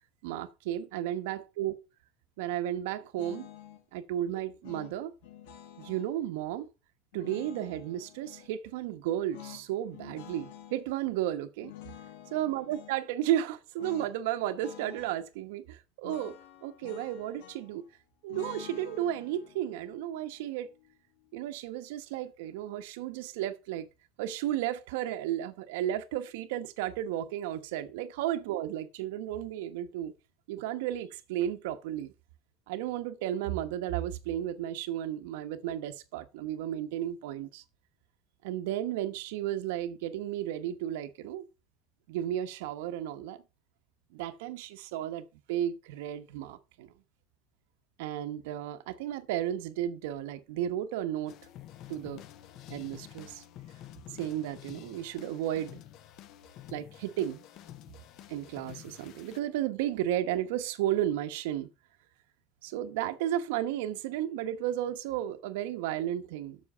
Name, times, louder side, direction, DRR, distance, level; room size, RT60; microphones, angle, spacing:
voice 1, 0.2-1.8 2.4-3.5 3.9-5.1 5.8-6.7 7.1-11.7 12.3-17.8 18.2-20.7 21.3-23.9 24.2-30.1 30.5-32.1 32.7-37.6 38.4-41.4 42.1-43.4 44.1-46.9 48.0-51.3 51.9-52.2 52.7-53.4 54.1-55.8 56.7-57.4 58.3-61.7 62.6-66.6, right 12 dB, 85° right, 1.0 m, -33 dB
sound 1, 3.2-3.8 4.6-6.1 7.1-8.5 9.3-10.8 11.6-13.0 13.8-14.1 14.4-15.2 16.0-17.8 18.3-21.4, left 11 dB, 75° left, 1.2 m, -49 dB
sound 2, 51.3-59.4, left 12 dB, 40° left, 0.5 m, -49 dB
7.4 x 6.5 x 5.4 m
cardioid pair, 180°, 0 cm